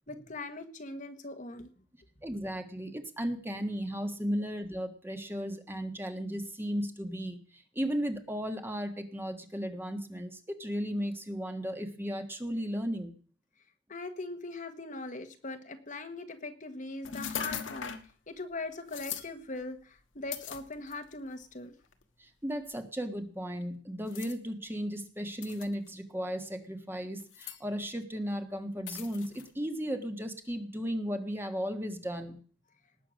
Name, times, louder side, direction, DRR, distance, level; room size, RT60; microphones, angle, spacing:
voice 1, 0.1-1.7 13.9-17.9 18.3-21.7, left 2 dB, 40° left, 7 dB, 1.4 m, -40 dB
voice 2, 2.2-7.4 7.7-13.1 22.2-32.4, equal, 10° right, 6 dB, 1.5 m, -35 dB
sound 1, 17.0-18.1 18.9-19.3 20.3-21.1 21.9-22.0 24.1-24.3 25.4-25.9 27.2-27.6 28.9-29.5, left 8 dB, 75° left, 1.4 m, -39 dB
19.0 x 7.9 x 6.3 m, 0.43 s
head